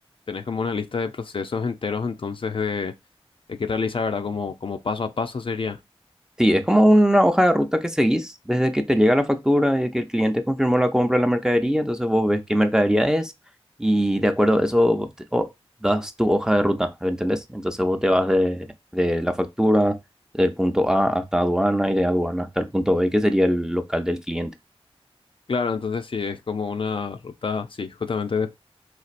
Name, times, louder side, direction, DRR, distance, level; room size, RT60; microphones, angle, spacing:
voice 1, 0.3-2.9 3.5-5.8 25.5-28.5, left 5 dB, 55° left, 0.4 m, -27 dB
voice 2, 6.4-13.3 13.8-15.5 15.8-18.7 18.9-20.0 20.3-24.5, equal, 5° right, 0.5 m, -21 dB
4.2 x 2.4 x 2.5 m
wide cardioid pair, 50°, 11 cm